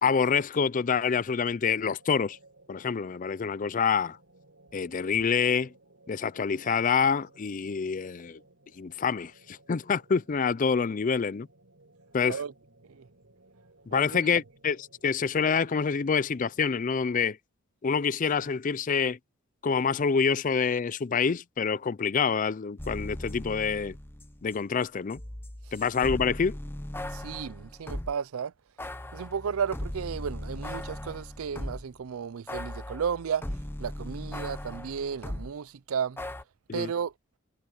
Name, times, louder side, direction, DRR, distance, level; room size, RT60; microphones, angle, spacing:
voice 1, 0.0-2.4 2.7-4.2 4.7-5.7 6.1-8.4 8.8-11.5 12.1-12.4 13.9-17.4 17.8-19.2 19.6-23.9 24.4-25.2 25.7-26.6 36.7-36.9, left 6 dB, 40° left, 0.4 m, -27 dB
sound 1, 1.8-16.9, right 2 dB, 65° right, 5.3 m, -60 dB
voice 2, 13.9-14.3 27.1-28.5 29.1-33.5 33.8-36.2 36.7-37.1, right 7 dB, 85° right, 0.5 m, -33 dB
sound 2, 22.8-24.6 24.8-28.1 28.8-32.0 32.5-35.5 36.2-36.4, left 1 dB, 10° left, 0.8 m, -38 dB
head